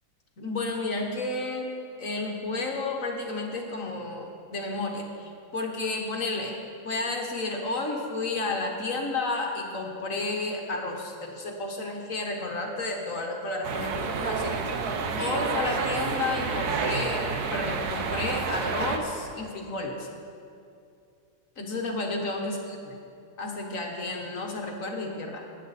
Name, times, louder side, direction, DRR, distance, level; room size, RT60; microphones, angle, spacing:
voice 1, 0.4-1.7 2.0-6.5 6.8-14.6 15.2-20.1 21.6-23.0 23.4-25.4, left 2 dB, 45° left, 1 dB, 1.4 m, -31 dB
sound 1, 13.6-19.0, right 5 dB, 60° right, 1.2 m, -29 dB
19.5 x 9.0 x 4.1 m, 2.5 s
omnidirectional pair, 2.2 m